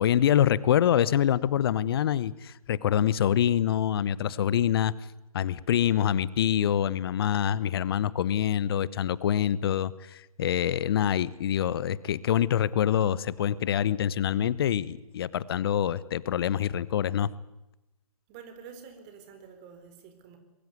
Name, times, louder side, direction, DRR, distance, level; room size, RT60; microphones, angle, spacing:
voice 1, 0.0-4.9 5.3-17.3, left 10 dB, 40° left, 20 dB, 1.0 m, -25 dB
voice 2, 18.3-20.4, right 6 dB, 25° right, 7 dB, 4.3 m, -48 dB
23.0 x 22.0 x 9.6 m, 0.94 s
figure-of-eight pair, 135°, 19 cm